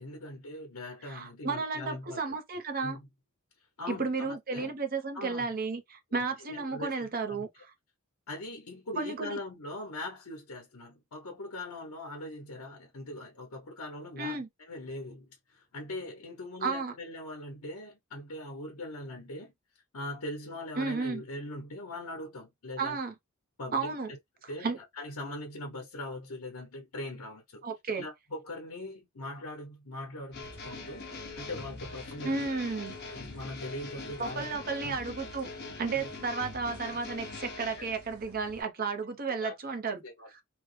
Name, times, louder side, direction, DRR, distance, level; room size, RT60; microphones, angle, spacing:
voice 1, 0.0-2.4 2.8-3.1 3.8-4.7 5.1-5.6 6.2-7.4 8.3-19.5 19.9-23.0 23.6-23.9 24.5-24.7 25.0-27.6 28.0-31.1 31.4-32.5 33.1-34.5 34.8-34.9 35.9-36.1 37.8-37.9 39.4-39.5 40.0-40.3, left 1 dB, 85° left, 0.9 m, -41 dB
voice 2, 1.1-3.0 3.9-7.7 9.0-9.4 14.2-14.5 16.6-16.9 20.8-21.2 22.8-23.1 23.7-24.1 24.4-24.8 27.6-28.1 32.2-33.0 34.2-35.5 35.8-40.0 40.3-40.4, right 4 dB, 45° right, 0.7 m, -33 dB
sound 1, 30.3-38.1, left 3 dB, 50° left, 1.0 m, -43 dB
sound 2, 30.4-38.6, right 2 dB, 75° right, 0.7 m, -54 dB
3.2 x 2.1 x 3.2 m
head